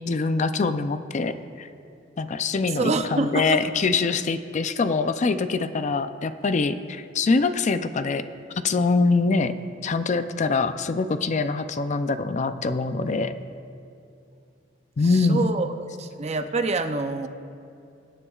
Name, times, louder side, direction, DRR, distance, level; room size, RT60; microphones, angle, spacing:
voice 1, 0.1-1.7 2.2-8.2 8.6-9.5 9.8-13.3 15.0-15.6, left 4 dB, 40° left, 11 dB, 0.4 m, -24 dB
voice 2, 2.8-3.6 15.1-15.7 16.0-17.3, right 3 dB, 35° right, 8 dB, 0.6 m, -26 dB
23.5 x 9.8 x 2.4 m, 2.5 s
head